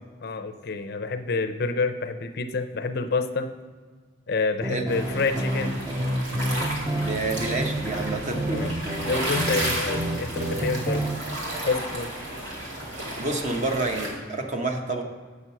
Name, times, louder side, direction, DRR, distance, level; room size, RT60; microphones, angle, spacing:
voice 1, 0.2-3.5 4.3-5.7 8.5-8.7 9.1-11.0 11.6-12.1, left 4 dB, 55° left, 8 dB, 0.5 m, -28 dB
sound 1, 4.6-11.2, right 1 dB, 15° right, 0.5 m, -29 dB
sound 2, 4.9-14.1, right 1 dB, 85° right, 2.2 m, -33 dB
voice 2, 6.9-8.6 9.4-9.5 13.1-15.0, right 2 dB, 40° right, 4 dB, 0.9 m, -28 dB
8.2 x 6.1 x 5.6 m, 1.5 s
head